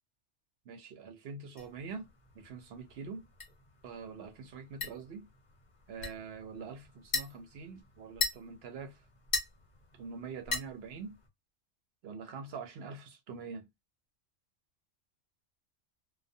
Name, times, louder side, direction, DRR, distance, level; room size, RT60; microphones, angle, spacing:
voice 1, 0.7-2.1 2.3-3.3 3.8-5.3 5.9-9.0 10.0-11.2 12.0-13.7, right 5 dB, 65° right, 0.8 m, -44 dB
sound 1, 1.6-11.3, left 4 dB, 45° left, 0.7 m, -41 dB
2.2 x 2.2 x 2.6 m
omnidirectional pair, 1.2 m